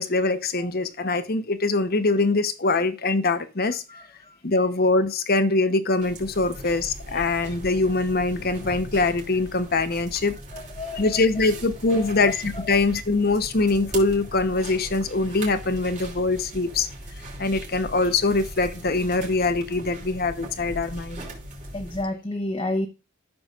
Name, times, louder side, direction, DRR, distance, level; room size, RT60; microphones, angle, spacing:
voice 1, 0.0-3.8 4.4-10.3 11.0-16.9 17.4-21.3, left 3 dB, 45° left, 1.0 m, -23 dB
voice 2, 3.9-4.4 7.1-7.3 10.5-11.2 11.9-12.2 12.5-12.7 21.7-22.9, left 1 dB, 25° left, 1.0 m, -32 dB
sound 1, 6.0-22.0, right 1 dB, 35° right, 3.3 m, -39 dB
13.5 x 6.8 x 2.5 m
head